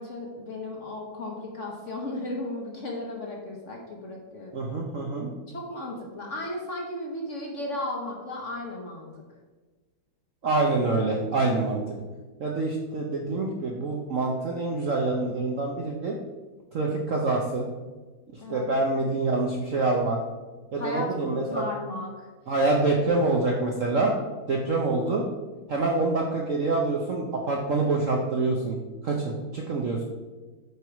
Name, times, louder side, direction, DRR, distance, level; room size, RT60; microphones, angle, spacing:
voice 1, 0.0-4.7 5.5-9.1 18.4-18.6 20.8-22.3, left 1 dB, 45° left, -1 dB, 1.2 m, -35 dB
voice 2, 4.5-5.3 10.4-11.8 12.4-16.2 16.7-17.7 18.5-20.2 20.7-21.6 22.5-24.1 24.5-25.2 25.7-28.8 29.0-30.0, right 3 dB, 60° right, 0 dB, 0.9 m, -26 dB
8.1 x 4.7 x 4.7 m, 1.3 s
omnidirectional pair, 2.3 m